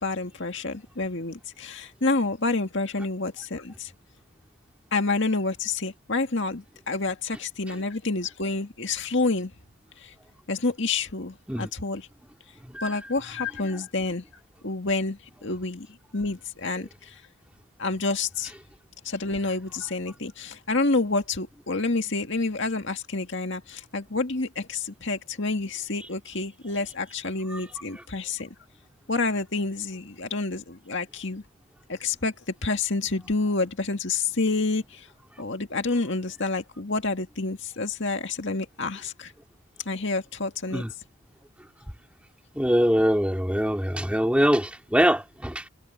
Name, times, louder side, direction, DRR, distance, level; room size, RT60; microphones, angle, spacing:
voice 1, 0.0-3.9 4.9-9.5 10.0-10.1 10.5-12.1 12.8-14.2 14.6-15.9 16.1-17.2 17.8-18.5 19.0-28.5 29.1-31.4 31.9-35.1 35.4-39.3 39.9-40.9, left 3 dB, 55° left, 2.1 m, -28 dB
voice 2, 42.5-45.7, equal, 5° right, 2.6 m, -23 dB
head